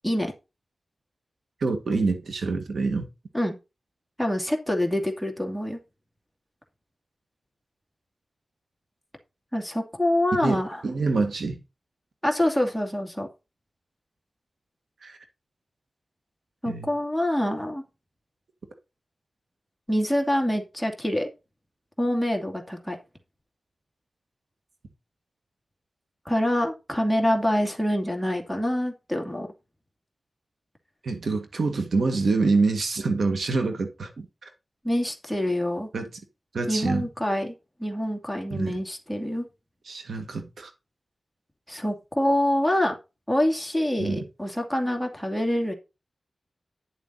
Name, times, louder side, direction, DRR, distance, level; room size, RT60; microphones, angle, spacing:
voice 1, 1.6-3.1 10.4-11.6 15.0-15.2 16.7-16.9 31.0-34.5 35.9-36.1 36.5-37.1 38.5-38.8 39.9-40.7 44.0-44.2, right 3 dB, 85° right, 1.9 m, -26 dB
voice 2, 4.2-5.8 9.5-10.8 12.2-13.3 16.6-17.8 19.9-21.3 22.0-23.0 26.3-29.5 34.8-35.9 36.7-37.5 37.8-39.5 41.7-42.9 43.3-45.7, left 1 dB, 5° right, 2.4 m, -26 dB
10.5 x 7.1 x 4.0 m
wide cardioid pair, 115°, 0 cm